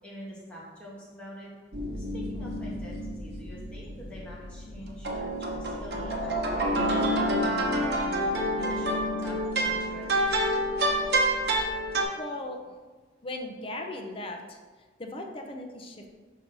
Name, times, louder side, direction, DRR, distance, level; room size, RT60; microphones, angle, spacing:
voice 1, 0.0-1.5 1.9-7.3 7.6-10.2, equal, 5° left, -7 dB, 2.2 m, -45 dB
sound 1, 1.7-12.0, right 1 dB, 60° right, 1.2 m, -28 dB
voice 2, 12.2-12.6 13.2-14.6 15.0-16.2, left 1 dB, 30° left, 3 dB, 0.7 m, -38 dB
6.4 x 5.3 x 5.3 m, 1.3 s
head